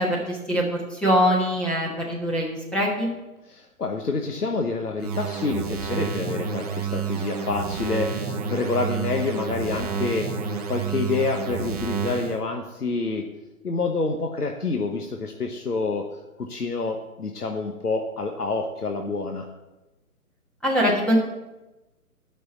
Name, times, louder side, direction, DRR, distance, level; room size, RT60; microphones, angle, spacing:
voice 1, 0.0-3.1 20.6-21.2, equal, ahead, -4 dB, 1.3 m, -23 dB
voice 2, 3.4-13.2 13.6-16.1 16.4-19.5, left 3 dB, 85° left, 3 dB, 1.2 m, -28 dB
sound 1, 5.0-12.4, right 6 dB, 25° right, 0.9 m, -29 dB
9.9 x 6.1 x 7.1 m, 1.0 s
figure-of-eight pair, 140°, 45 cm